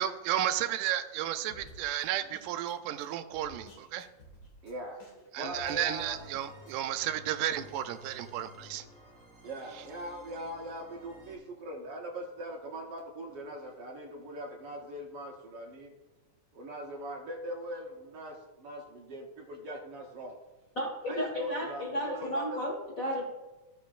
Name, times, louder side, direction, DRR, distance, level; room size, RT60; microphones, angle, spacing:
voice 1, 0.0-4.1 5.3-8.8, right 11 dB, 85° right, 10 dB, 2.1 m, -33 dB
sound 1, 1.4-6.8, equal, 50° left, 2.2 m, -54 dB
voice 2, 4.6-5.0 5.4-6.2 9.4-15.9 16.5-20.4 21.1-22.7, right 1 dB, 70° right, 0 dB, 1.5 m, -41 dB
sound 2, 5.7-11.4, right 1 dB, ahead, 2.5 m, -53 dB
voice 3, 20.7-23.2, equal, 65° left, -2 dB, 0.8 m, -33 dB
15.0 x 5.6 x 2.4 m, 1.1 s
omnidirectional pair, 3.6 m